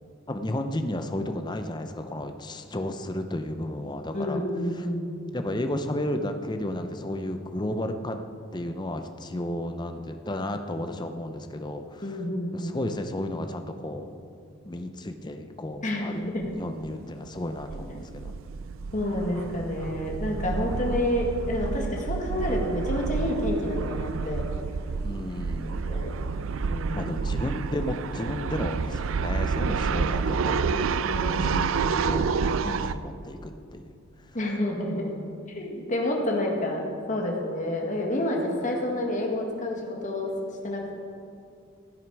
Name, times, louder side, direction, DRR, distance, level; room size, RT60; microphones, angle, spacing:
voice 1, 0.3-4.4 4.7-4.9 5.3-8.2 8.5-12.0 12.5-14.1 14.7-16.2 16.5-18.3 25.0-25.8 26.9-30.9 31.4-32.3 32.6-33.9, left 1 dB, 20° left, 7 dB, 0.7 m, -33 dB
voice 2, 4.1-5.2 12.0-12.8 15.8-16.5 17.7-18.0 18.9-24.4 25.8-26.1 26.7-27.1 31.1-31.6 34.3-35.1 35.6-36.8 37.1-40.3 40.6-41.0, left 1 dB, 35° left, 0 dB, 1.8 m, -29 dB
sound 1, 16.4-16.6 16.8-16.9 17.3-32.9, right 5 dB, 65° right, 0.4 m, -29 dB
15.5 x 9.3 x 4.7 m, 2.5 s
head